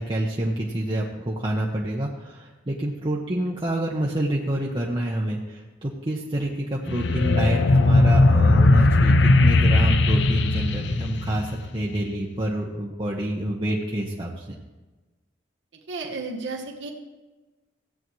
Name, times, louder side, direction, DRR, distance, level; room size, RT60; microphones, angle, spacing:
voice 1, 0.0-14.5, right 1 dB, 25° right, -3 dB, 0.9 m, -27 dB
sound 1, 6.9-11.8, left 2 dB, 65° left, 0.5 m, -18 dB
voice 2, 15.9-16.9, right 3 dB, 70° right, 0 dB, 1.2 m, -32 dB
16.0 x 8.6 x 3.1 m, 1.2 s
head